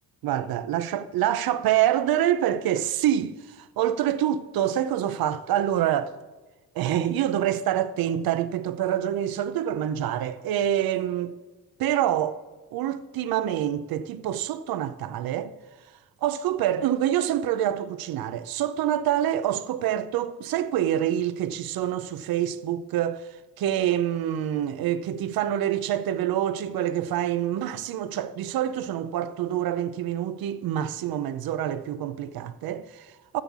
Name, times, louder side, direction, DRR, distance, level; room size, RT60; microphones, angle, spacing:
voice 1, 0.2-6.1 6.7-11.3 11.8-12.4 12.7-15.5 16.2-23.3 23.6-33.4, right 11 dB, 85° right, 0.6 m, -26 dB
11.0 x 7.3 x 7.2 m
cardioid pair, 120°, 35 cm